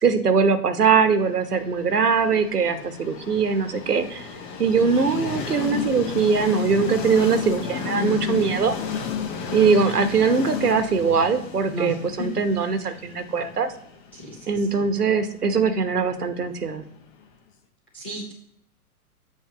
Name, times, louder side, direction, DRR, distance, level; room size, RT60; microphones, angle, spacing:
voice 1, 0.0-4.3 4.6-8.7 9.5-13.7 14.5-16.8, right 5 dB, 80° right, 10 dB, 1.0 m, -21 dB
Train, 1.4-17.2, left 7 dB, 30° left, 0.9 m, -33 dB
voice 2, 7.9-8.5 11.7-12.3 14.1-14.9 17.9-18.3, left 2 dB, 10° left, -5 dB, 0.3 m, -32 dB
8.4 x 3.0 x 4.9 m, 0.71 s
figure-of-eight pair, 105°, 46 cm